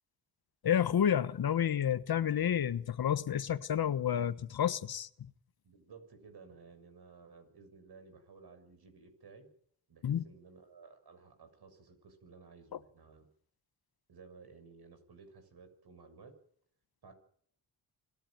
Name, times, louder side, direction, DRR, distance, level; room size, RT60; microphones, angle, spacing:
voice 1, 0.6-5.3 10.0-10.2 12.7-12.8, left 9 dB, 60° left, 1.3 m, -30 dB
voice 2, 5.6-9.5 9.9-13.3 14.1-16.4 17.0-17.1, right 4 dB, 65° right, 6.8 m, -56 dB
26.5 x 12.5 x 9.2 m
supercardioid pair, 55°, 42 cm